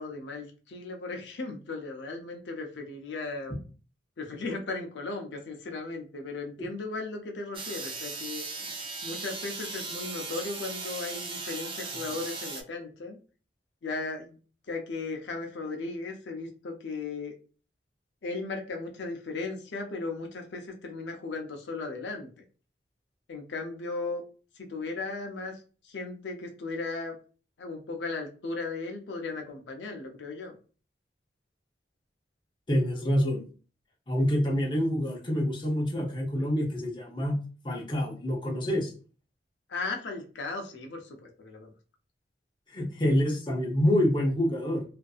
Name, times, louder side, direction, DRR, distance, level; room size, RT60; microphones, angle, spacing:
voice 1, 0.0-3.6 4.2-8.4 9.0-13.2 13.8-14.4 14.7-17.3 18.2-22.3 23.3-24.2 24.6-27.1 27.6-30.5 39.7-41.7, left 3 dB, 80° left, 3 dB, 0.5 m, -36 dB
sound 1, 7.5-12.6, right 4 dB, 30° right, 0.4 m, -37 dB
voice 2, 32.7-33.4 34.1-37.3 37.6-38.9 42.7-44.8, equal, 25° left, -2 dB, 0.7 m, -27 dB
2.5 x 2.5 x 2.3 m, 0.37 s
head